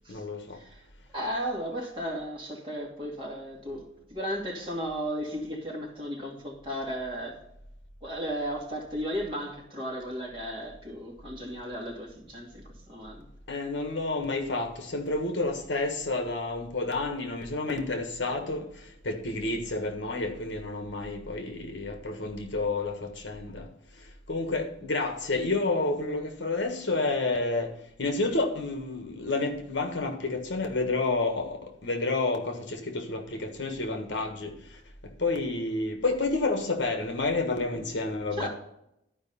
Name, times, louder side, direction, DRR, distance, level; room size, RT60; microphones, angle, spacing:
voice 1, 0.1-0.6 13.5-38.5, left 3 dB, 70° left, 1.4 m, -30 dB
voice 2, 1.1-7.4 8.0-12.6 12.9-13.3 38.3-38.5, equal, 25° right, 2.5 m, -35 dB
12.0 x 5.1 x 5.6 m
head